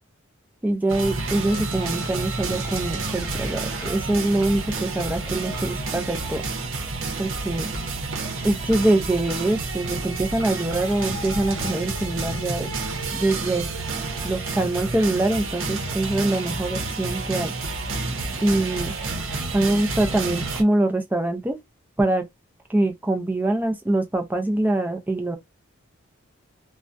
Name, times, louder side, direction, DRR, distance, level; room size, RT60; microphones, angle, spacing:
voice 1, 0.6-6.4 7.2-7.7 8.4-12.7 13.1-13.7 14.2-17.5 18.4-18.9 19.5-21.6 22.0-22.3 22.7-25.4, right 2 dB, 10° right, 0.4 m, -24 dB
sound 1, 0.9-20.6, right 3 dB, 70° right, 0.8 m, -29 dB
2.3 x 2.1 x 2.5 m
head